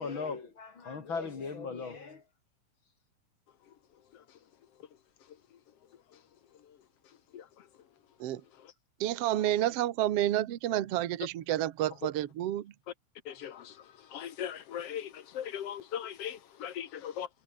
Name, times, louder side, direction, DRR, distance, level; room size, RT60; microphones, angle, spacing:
voice 1, 0.0-2.2, left 4 dB, 40° left, 3.2 m, -38 dB
voice 2, 9.0-12.7, right 13 dB, 60° right, 2.0 m, -30 dB
voice 3, 13.3-13.8 14.1-17.3, left 9 dB, 60° left, 2.0 m, -39 dB
omnidirectional pair, 3.6 m